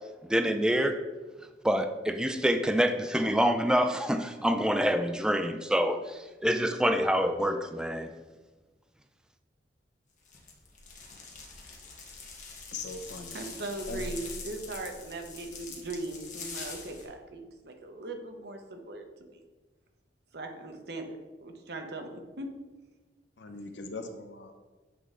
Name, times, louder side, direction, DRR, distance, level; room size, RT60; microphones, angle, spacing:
voice 1, 0.2-1.0 1.6-8.1, equal, 5° right, 7 dB, 0.3 m, -26 dB
sound 1, 10.2-17.1, left 3 dB, 45° left, 1.1 m, -43 dB
voice 2, 12.7-13.4 13.9-14.0 23.4-24.6, left 3 dB, 85° left, 6 dB, 0.7 m, -40 dB
voice 3, 13.3-19.1 20.3-22.5, right 2 dB, 65° right, 4 dB, 0.9 m, -39 dB
7.8 x 3.3 x 3.7 m, 1.2 s
head